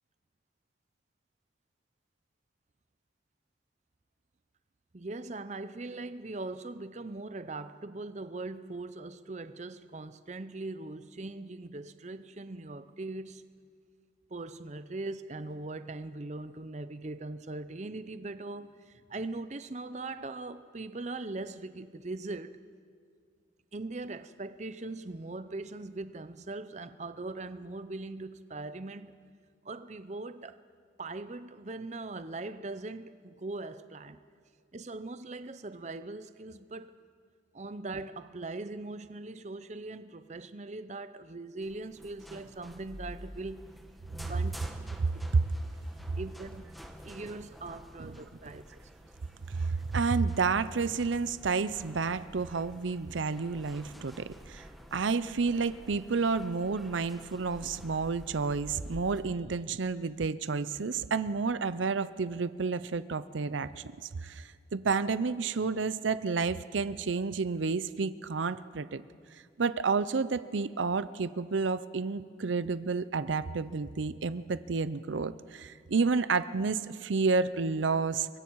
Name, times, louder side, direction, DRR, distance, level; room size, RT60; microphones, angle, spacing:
voice 1, 4.9-13.5 14.3-22.6 23.7-29.1 29.6-30.6 31.0-34.2 34.7-36.9 37.5-43.7 44.3-44.5 46.2-46.7 47.0-48.8, right 2 dB, 35° right, 0.6 m, -40 dB
sound 1, 41.6-59.2, equal, ahead, 1.2 m, -50 dB
voice 2, 45.0-45.4 48.0-48.1 49.5-54.6 54.9-63.8 64.2-69.0 69.6-78.3, right 4 dB, 80° right, 0.6 m, -30 dB
28.0 x 23.5 x 4.7 m
head